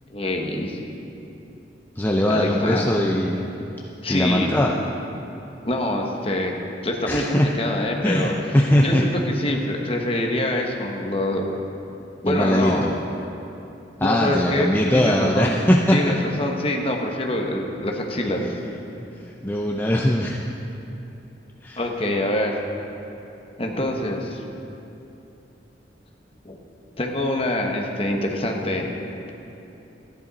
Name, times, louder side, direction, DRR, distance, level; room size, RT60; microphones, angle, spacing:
voice 1, 0.1-0.8 2.3-2.9 4.0-4.7 5.6-6.6 6.8-8.3 8.8-11.4 12.2-12.8 14.0-15.6 15.9-18.4 21.8-22.5 23.6-24.4 26.4-26.6 27.0-28.9, left 1 dB, 30° left, 1 dB, 1.1 m, -25 dB
voice 2, 2.0-3.4 4.1-4.7 7.1-7.5 8.0-9.1 12.3-12.9 14.0-16.1 19.4-20.4 21.6-21.8, left 1 dB, 10° left, -2 dB, 0.5 m, -20 dB
14.5 x 10.5 x 4.1 m, 2.9 s
head